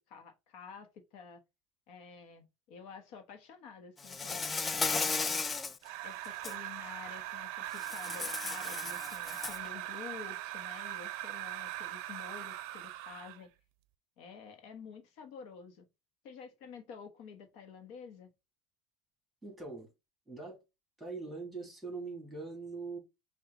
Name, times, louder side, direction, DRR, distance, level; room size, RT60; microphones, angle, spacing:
voice 1, 0.0-1.4 1.9-4.6 4.9-5.4 6.0-13.5 14.2-15.9 16.2-18.3, left 6 dB, 70° left, 1.0 m, -50 dB
Insect, 4.0-5.8 6.2-6.5 7.8-9.7, left 4 dB, 20° left, 0.3 m, -35 dB
sound 1, 5.8-13.5, right 15 dB, 75° right, 0.5 m, -41 dB
voice 2, 19.4-19.9 20.3-20.6 21.0-23.0, right 3 dB, 5° right, 2.2 m, -42 dB
5.9 x 2.4 x 3.7 m
supercardioid pair, 135°, 0 cm